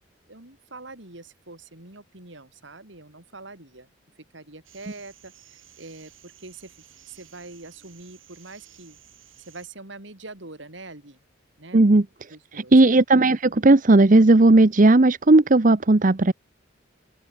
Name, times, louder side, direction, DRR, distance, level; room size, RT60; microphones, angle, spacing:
voice 1, 0.3-3.9 4.3-6.8 7.1-9.0 9.5-11.2 11.6-11.8 12.3-12.7, right 2 dB, 65° right, 3.5 m, -44 dB
sound 1, 4.6-9.7, right 10 dB, 85° right, 6.9 m, -53 dB
voice 2, 11.7-16.3, right 2 dB, 40° right, 0.8 m, -16 dB
open air
head